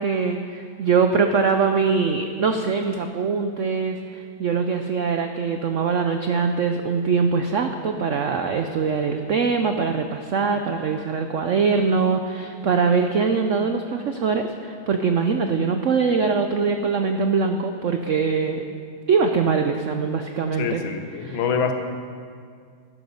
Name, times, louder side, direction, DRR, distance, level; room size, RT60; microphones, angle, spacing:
voice 1, 0.0-18.6 19.1-20.8 21.2-21.4, right 5 dB, 80° right, 6 dB, 0.6 m, -22 dB
voice 2, 20.6-21.7, left 6 dB, 80° left, 6 dB, 1.8 m, -25 dB
12.0 x 12.0 x 5.4 m, 2.2 s
omnidirectional pair, 2.1 m